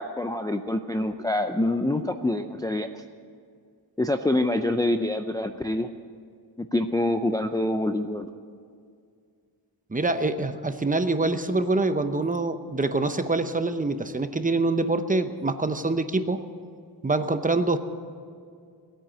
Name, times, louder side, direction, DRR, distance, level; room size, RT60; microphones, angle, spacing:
voice 1, 0.0-2.9 4.0-5.9 6.6-8.3, left 1 dB, 10° left, 6 dB, 0.5 m, -26 dB
voice 2, 9.9-16.4 17.0-17.8, right 2 dB, 20° right, 9 dB, 0.8 m, -25 dB
18.5 x 9.1 x 8.7 m, 2.2 s
wide cardioid pair, 125°, 43 cm